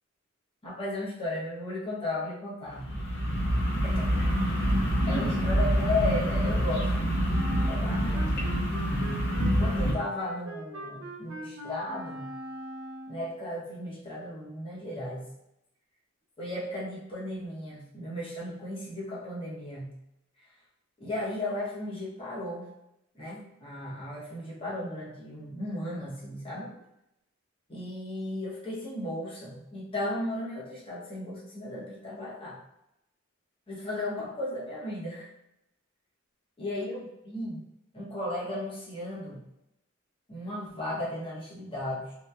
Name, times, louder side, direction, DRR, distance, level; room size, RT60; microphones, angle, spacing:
voice 1, 0.6-2.9 3.8-4.6 5.1-7.4 7.6-8.4 9.6-12.3 13.1-15.3 16.4-20.0 21.0-22.7 23.1-26.7 27.7-32.6 33.7-35.3 36.6-37.6 37.9-39.4 40.3-42.1, left 1 dB, 25° left, -7 dB, 0.8 m, -35 dB
sound 1, 2.7-9.9, equal, 55° left, 0.6 m, -26 dB
Wind instrument woodwind instrument, 7.3-13.3, equal, 80° right, 0.5 m, -42 dB
2.8 x 2.2 x 2.2 m, 0.83 s
head